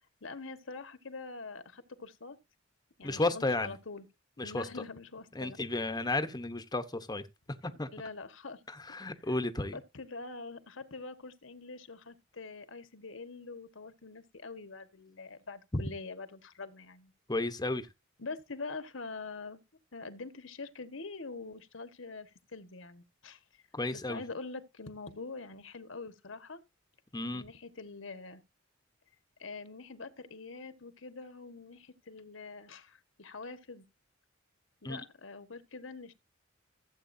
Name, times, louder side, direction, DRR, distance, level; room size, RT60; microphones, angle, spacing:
voice 1, 0.2-2.4 3.0-4.0 4.4-5.6 7.9-8.6 9.2-9.3 9.7-17.1 18.2-19.6 19.9-23.4 23.9-26.6 27.3-28.4 29.4-33.8 34.8-36.1, left 3 dB, 75° left, 1.5 m, -44 dB
voice 2, 3.0-3.8 4.4-4.8 5.3-7.3 7.8-7.9 8.7-9.8 15.7-15.8 17.3-17.9 23.7-24.2 27.1-27.4 34.8-35.0, left 2 dB, 20° left, 1.0 m, -33 dB
15.5 x 8.3 x 2.7 m
head